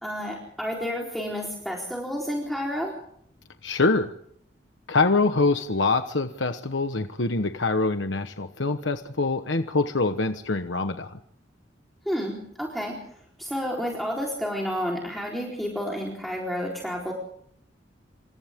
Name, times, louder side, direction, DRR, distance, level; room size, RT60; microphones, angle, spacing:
voice 1, 0.0-2.9 12.1-13.0 13.4-17.1, equal, ahead, -2 dB, 4.1 m, -30 dB
voice 2, 3.6-4.1 4.9-11.1, left 3 dB, 85° left, 7 dB, 1.2 m, -24 dB
27.5 x 27.0 x 3.7 m, 0.67 s
head